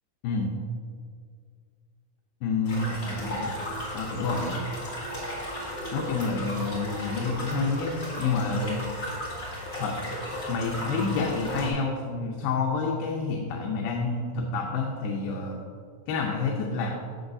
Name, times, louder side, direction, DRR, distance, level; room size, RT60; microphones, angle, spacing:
voice 1, 2.4-3.6 3.9-4.6 5.9-8.8 9.8-9.9 10.5-15.6 16.1-16.9, left 4 dB, 90° left, 0 dB, 2.6 m, -28 dB
sound 1, 2.6-11.7, left 1 dB, 25° left, 1.6 m, -35 dB
sound 2, 3.2-3.3 3.6-3.8 4.1-4.7 5.0-5.2 5.5-6.0 6.3-6.5 6.8-7.3 7.6-7.8 8.1-8.3, right 3 dB, 55° right, 2.5 m, -44 dB
12.0 x 7.0 x 2.6 m, 2.1 s
omnidirectional pair, 4.2 m